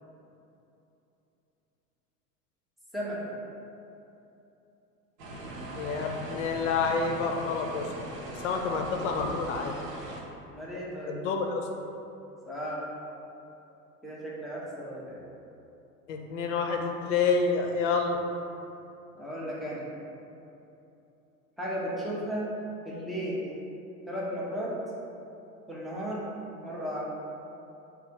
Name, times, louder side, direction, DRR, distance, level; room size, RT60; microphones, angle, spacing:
voice 1, 2.9-3.3 8.4-8.8 10.4-11.2 12.5-12.8 14.0-15.2 19.1-19.9 21.6-22.5 22.8-23.4 24.1-24.8 25.7-26.2 26.6-27.0, equal, ahead, -8 dB, 0.4 m, -35 dB
sound 1, 5.2-10.2, right 1 dB, 60° right, 0.8 m, -40 dB
voice 2, 5.8-7.9 8.4-9.7 11.1-11.7 16.1-18.2, left 4 dB, 55° left, 3 dB, 0.6 m, -28 dB
3.6 x 2.4 x 4.3 m, 2.8 s
figure-of-eight pair, 80°, 46 cm